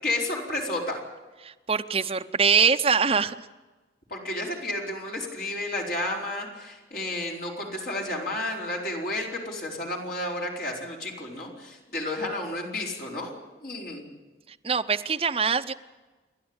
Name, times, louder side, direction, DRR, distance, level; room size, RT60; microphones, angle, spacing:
voice 1, 0.0-1.0 4.1-13.3 13.6-14.0, left 2 dB, 55° left, -1 dB, 4.8 m, -31 dB
voice 2, 1.4-3.3 14.6-15.7, right 6 dB, 30° right, 7 dB, 0.7 m, -23 dB
29.5 x 11.5 x 8.9 m, 1.2 s
head